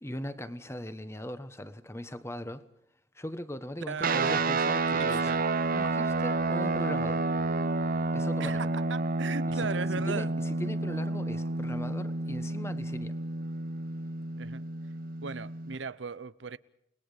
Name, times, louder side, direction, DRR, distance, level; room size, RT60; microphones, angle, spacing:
voice 1, 0.0-2.6 3.1-5.3 5.7-7.2 8.1-8.6 9.5-9.7 9.9-13.2, left 1 dB, 15° left, 1.3 m, -39 dB
voice 2, 3.9-4.4 5.0-5.5 8.4-10.3 14.4-14.6 15.2-16.6, right 5 dB, 90° right, 0.8 m, -37 dB
sound 1, 4.0-15.7, right 3 dB, 50° right, 0.8 m, -30 dB
29.5 x 20.0 x 5.1 m
head